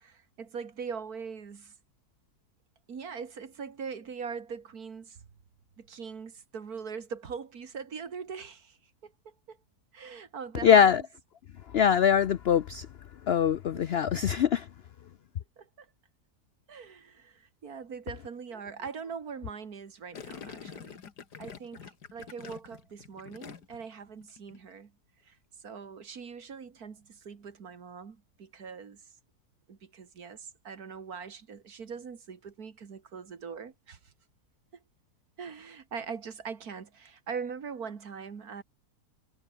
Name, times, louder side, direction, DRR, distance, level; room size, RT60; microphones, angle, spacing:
voice 1, 0.0-1.7 2.9-5.3 5.8-8.8 9.0-9.6 9.9-11.1 13.7-13.9 15.6-15.9 16.7-21.0 21.4-24.9 25.2-25.4 25.6-29.0 29.7-34.1 35.4-38.6, right 6 dB, 65° right, 2.3 m, -42 dB
voice 2, 10.6-11.0 11.7-12.9 13.3-14.7, left 8 dB, 70° left, 0.5 m, -22 dB
Gurgling, 20.1-23.9 24.2-24.6, left 7 dB, 85° left, 2.3 m, -46 dB
omnidirectional pair, 1.7 m